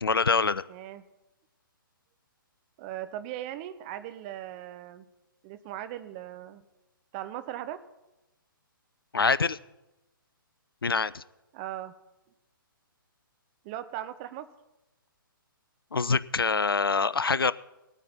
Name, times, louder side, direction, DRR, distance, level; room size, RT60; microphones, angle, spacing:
voice 1, 0.0-0.6 9.1-9.6 10.8-11.2 15.9-17.5, left 4 dB, 85° left, 18 dB, 0.4 m, -25 dB
voice 2, 0.7-1.0 2.8-5.1 5.4-6.6 7.1-7.8 11.5-11.9 13.6-14.5, right 12 dB, 30° right, 12 dB, 0.7 m, -38 dB
19.0 x 9.0 x 4.2 m, 0.98 s
figure-of-eight pair, 125°, 12 cm